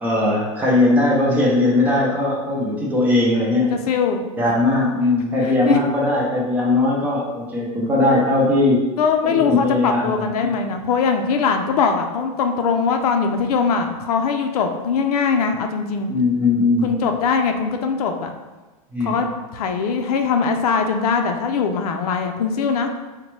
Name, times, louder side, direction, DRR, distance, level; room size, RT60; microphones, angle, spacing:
voice 1, 0.0-3.9 4.4-8.8 9.2-10.5 16.1-16.9 18.9-19.2, left 2 dB, 10° right, -4 dB, 0.4 m, -19 dB
voice 2, 3.7-4.2 5.4-5.8 9.0-16.1 16.8-18.3 19.0-22.9, left 5 dB, 90° left, 5 dB, 0.5 m, -21 dB
4.0 x 2.2 x 3.0 m, 1.2 s
supercardioid pair, 170°, 19 cm